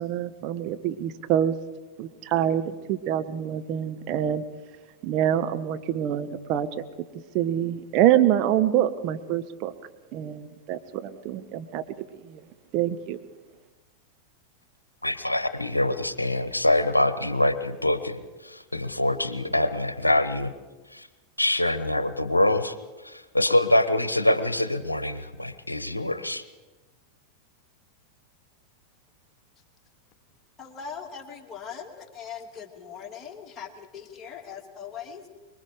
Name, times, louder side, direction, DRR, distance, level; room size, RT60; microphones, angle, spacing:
voice 1, 0.0-1.5 2.0-4.4 5.0-6.8 7.3-9.7 10.1-11.8 12.2-12.4 12.7-13.2, right 11 dB, 40° right, 9 dB, 1.2 m, -25 dB
voice 2, 15.0-20.5 20.9-21.1 21.4-22.7 23.0-26.4, left 1 dB, 85° left, 13 dB, 1.0 m, -24 dB
voice 3, 30.6-35.3, left 7 dB, 25° left, 1 dB, 2.9 m, -40 dB
24.5 x 22.5 x 5.0 m, 1.2 s
figure-of-eight pair, 90°, 0 cm